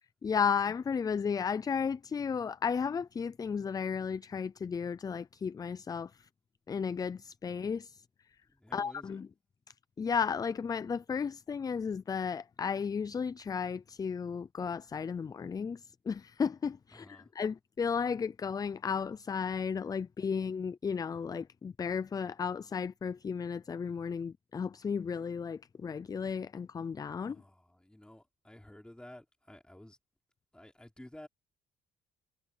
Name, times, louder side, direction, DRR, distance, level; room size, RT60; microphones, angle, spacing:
voice 1, 0.2-6.3 6.7-8.0 8.7-9.3 10.0-27.4, left 6 dB, 20° left, 0.4 m, -34 dB
voice 2, 8.5-9.2 16.9-17.3 27.2-30.0 30.5-31.3, left 1 dB, 5° left, 4.0 m, -53 dB
cardioid pair, 110°, 17 cm